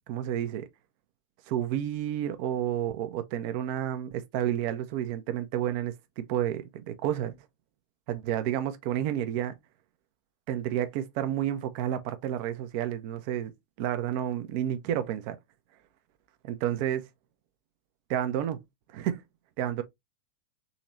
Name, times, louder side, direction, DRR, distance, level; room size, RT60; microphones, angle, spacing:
voice 1, 0.1-0.7 1.5-7.4 8.1-9.6 10.5-13.5 13.8-15.4 16.4-17.1 18.1-18.6 18.9-19.2 19.6-19.8, right 11 dB, 45° right, 0.7 m, -30 dB
3.8 x 3.1 x 3.0 m
figure-of-eight pair, 90°, 0 cm